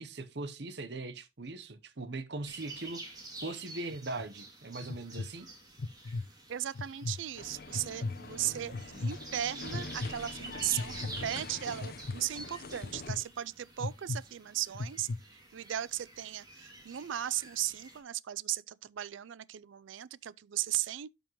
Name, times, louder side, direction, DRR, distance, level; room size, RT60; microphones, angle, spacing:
voice 1, 0.0-3.0 3.4-5.5 8.2-9.1, right 2 dB, 60° right, 0.9 m, -41 dB
sound 1, 2.4-18.0, right 2 dB, 20° right, 2.6 m, -49 dB
sound 2, 3.9-4.3 4.8-5.3 5.8-6.2 6.7-7.2 7.7-8.2 8.7-9.2 9.7-10.1 10.8-11.1 11.8-12.2 12.8-13.2 13.8-14.2 14.7-15.2, left 3 dB, 90° left, 0.6 m, -35 dB
voice 2, 6.5-8.7 9.0-21.1, right 12 dB, 75° right, 0.4 m, -36 dB
sound 3, 7.3-13.2, left 3 dB, 45° left, 0.8 m, -45 dB
12.0 x 5.4 x 3.1 m
head